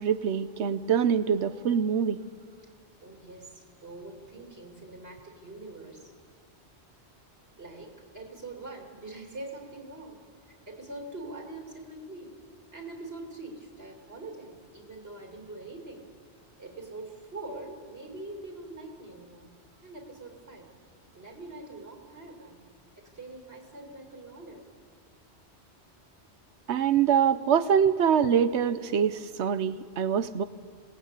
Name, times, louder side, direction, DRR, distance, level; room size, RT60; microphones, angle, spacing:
voice 1, 0.0-2.2 26.7-30.4, right 8 dB, 80° right, 14 dB, 1.1 m, -24 dB
voice 2, 3.0-6.1 7.6-12.4 12.7-16.1 16.6-19.5 19.8-20.7 21.1-22.6 23.0-24.6, right 2 dB, 65° right, 1 dB, 3.1 m, -43 dB
27.0 x 19.0 x 8.4 m, 2.1 s
omnidirectional pair, 1.1 m